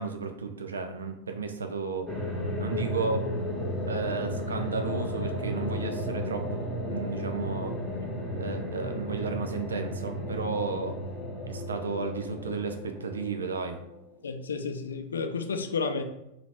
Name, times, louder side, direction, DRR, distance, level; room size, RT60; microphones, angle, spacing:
voice 1, 0.0-2.1 2.6-3.3 3.9-7.7 8.3-10.9 11.4-13.8, right 4 dB, 70° right, 6 dB, 0.5 m, -33 dB
sound 1, 2.1-14.1, equal, 5° left, 0.9 m, -34 dB
voice 2, 14.2-16.0, left 5 dB, 70° left, 7 dB, 0.4 m, -31 dB
3.9 x 2.8 x 3.4 m, 0.87 s
figure-of-eight pair, 90°, 0 cm